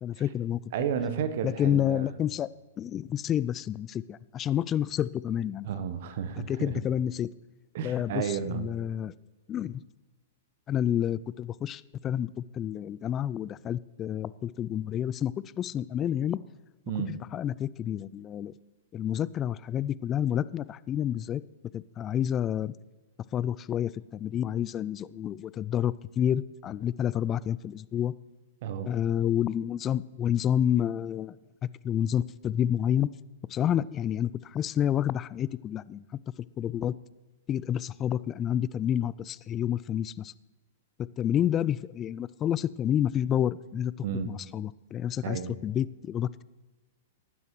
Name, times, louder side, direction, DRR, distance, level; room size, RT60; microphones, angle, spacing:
voice 1, 0.0-0.6 1.4-2.5 2.8-5.9 6.5-7.3 7.8-9.1 9.5-9.8 10.7-16.4 17.1-18.5 18.9-21.4 21.7-22.7 23.3-28.1 28.9-31.4 31.8-33.1 33.5-36.0 36.6-36.9 37.5-40.3 41.0-43.9 44.3-46.4, left 10 dB, 25° left, 19 dB, 0.3 m, -29 dB
voice 2, 0.7-2.1 5.6-6.7 7.7-8.7 16.9-17.2 28.6-28.9 44.0-44.3 45.2-45.5, right 7 dB, 55° right, 11 dB, 1.0 m, -32 dB
18.5 x 9.6 x 3.2 m, 1.2 s
figure-of-eight pair, 105°, 0 cm